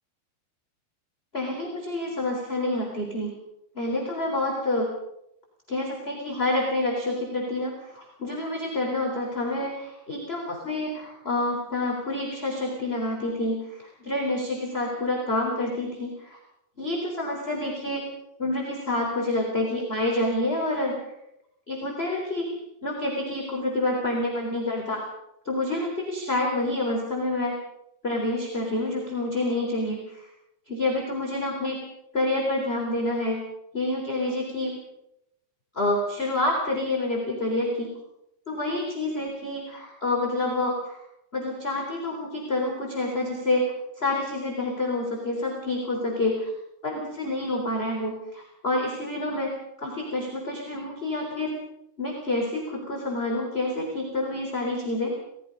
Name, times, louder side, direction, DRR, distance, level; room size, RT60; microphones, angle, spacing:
voice 1, 1.3-3.3 3.7-4.9 5.7-16.4 16.8-18.0 18.4-21.0 21.7-22.5 22.8-25.0 25.4-27.6 28.0-30.3 30.7-31.8 32.1-33.4 33.7-34.7 35.7-37.9 38.5-41.0 41.3-46.5 46.8-49.5 49.8-51.5 52.0-55.1, left 2 dB, 15° left, -1 dB, 3.6 m, -28 dB
27.5 x 20.0 x 5.3 m, 0.82 s
omnidirectional pair, 4.7 m